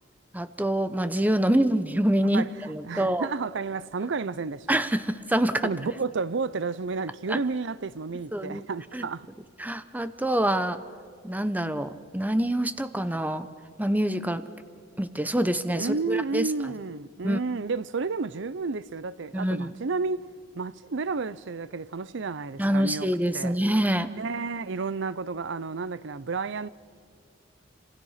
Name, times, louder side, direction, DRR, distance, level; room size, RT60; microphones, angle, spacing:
voice 1, 0.3-3.3 4.7-5.7 7.3-7.4 8.3-8.6 8.9-9.1 9.6-10.8 11.2-13.5 13.8-14.5 15.0-16.4 17.2-17.4 19.3-19.7 22.6-24.1, right 1 dB, 10° right, 0.9 m, -26 dB
voice 2, 2.8-4.9 5.6-9.3 15.8-20.3 20.5-23.1 23.3-23.5 24.1-26.7, right 4 dB, 65° right, 0.6 m, -31 dB
28.5 x 27.0 x 5.8 m
head